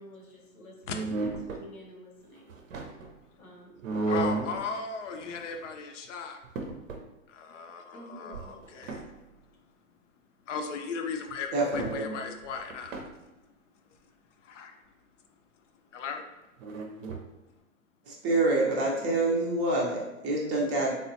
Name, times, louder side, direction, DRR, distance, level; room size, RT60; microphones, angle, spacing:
voice 1, 0.0-2.5 3.4-3.9 7.9-8.7, equal, 85° left, 0 dB, 1.0 m, -49 dB
sound 1, 0.8-1.6 2.4-3.1 3.8-4.6 5.1-5.7 6.1-6.2 6.4-7.1 8.3-9.1 11.3-11.4 11.7-12.0 12.4-13.1 16.6-17.3, right 3 dB, 65° right, 0.6 m, -34 dB
voice 2, 4.1-6.4 7.3-9.1 10.5-13.1 14.4-14.8 15.9-16.2, left 5 dB, 60° left, 5 dB, 0.6 m, -37 dB
voice 3, 11.5-12.1 18.1-21.0, right 2 dB, 25° right, -3 dB, 0.5 m, -27 dB
3.4 x 2.1 x 2.7 m, 1.0 s
hypercardioid pair, 120°, 42 cm